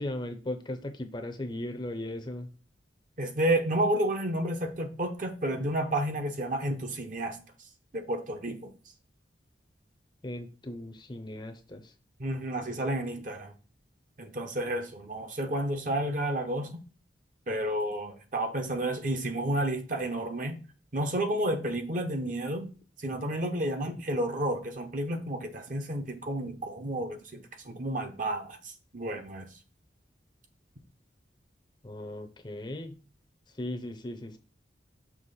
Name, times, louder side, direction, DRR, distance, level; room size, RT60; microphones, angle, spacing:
voice 1, 0.0-2.5 10.2-11.9 31.8-33.0 33.6-34.4, left 1 dB, 25° left, 0.6 m, -37 dB
voice 2, 3.2-7.4 7.9-8.7 12.2-13.5 14.2-16.8 17.5-20.6 20.9-22.7 23.0-29.5, right 1 dB, 45° right, 0.9 m, -31 dB
6.2 x 3.0 x 5.4 m
head